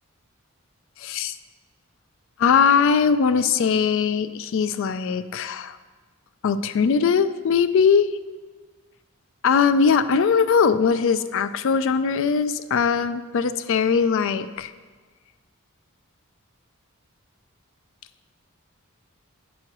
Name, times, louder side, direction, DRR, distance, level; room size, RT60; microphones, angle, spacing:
voice 1, 1.0-1.4 2.4-5.8 6.4-8.1 9.4-14.7, left 6 dB, 65° left, 12 dB, 0.3 m, -20 dB
8.6 x 3.1 x 5.9 m, 1.4 s
head